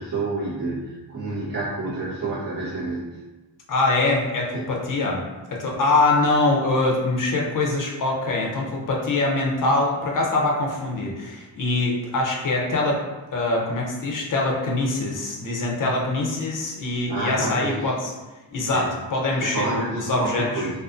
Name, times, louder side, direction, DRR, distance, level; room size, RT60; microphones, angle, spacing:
voice 1, 0.0-3.1 4.5-4.6 5.6-5.7 17.1-17.8 18.7-18.9 19.4-20.7, right 2 dB, 25° right, -12 dB, 0.9 m, -29 dB
voice 2, 3.7-5.2 5.5-13.0 13.3-18.1 18.5-20.7, left 2 dB, 45° left, -1 dB, 0.5 m, -23 dB
2.5 x 2.3 x 2.4 m, 1.1 s
wide cardioid pair, 155°, 45 cm